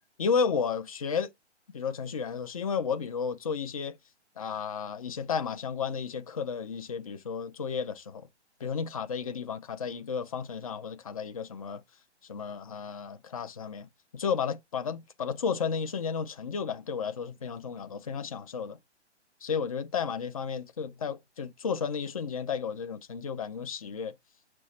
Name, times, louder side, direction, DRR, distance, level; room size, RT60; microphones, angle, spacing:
voice 1, 0.2-1.3 1.7-4.0 4.4-8.3 8.6-11.8 12.3-13.9 14.1-18.8 19.4-24.1, left 6 dB, 30° left, 0.4 m, -32 dB
6.1 x 2.1 x 4.0 m
hypercardioid pair, 150°, 35 cm